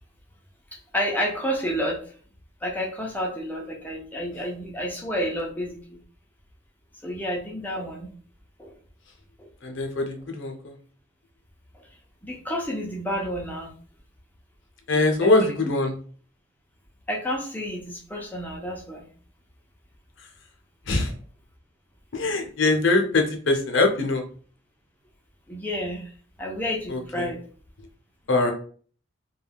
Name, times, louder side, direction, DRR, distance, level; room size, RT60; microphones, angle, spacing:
voice 1, 0.9-2.0 2.6-6.0 7.0-8.1 8.6-8.7 9.4-9.5 12.2-13.7 15.2-15.6 17.1-19.1 25.5-26.1 26.4-27.4, equal, 10° left, -1 dB, 0.5 m, -30 dB
voice 2, 9.6-10.7 14.9-15.9 20.9-21.1 22.1-24.2 26.9-27.3 28.3-28.5, left 2 dB, 70° left, 3 dB, 0.6 m, -22 dB
2.3 x 2.2 x 3.3 m, 0.43 s
head